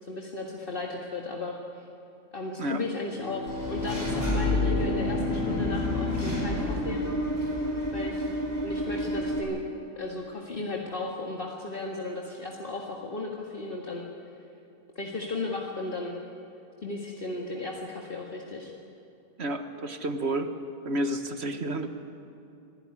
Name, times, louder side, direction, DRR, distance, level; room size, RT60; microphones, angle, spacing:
voice 1, 0.0-1.9 2.3-7.0 7.9-9.6 10.0-14.0 15.0-16.2 16.8-18.7, left 2 dB, 50° left, -1 dB, 2.1 m, -35 dB
Bowed string instrument, 3.1-7.7, left 4 dB, 85° left, 3.6 m, -34 dB
Engine / Mechanisms, 3.5-9.4, left 1 dB, 15° right, 4.5 m, -29 dB
voice 2, 19.4-20.5 20.8-21.9, right 1 dB, 65° right, 7 dB, 1.7 m, -30 dB
25.5 x 16.0 x 9.7 m, 2.8 s
omnidirectional pair, 1.2 m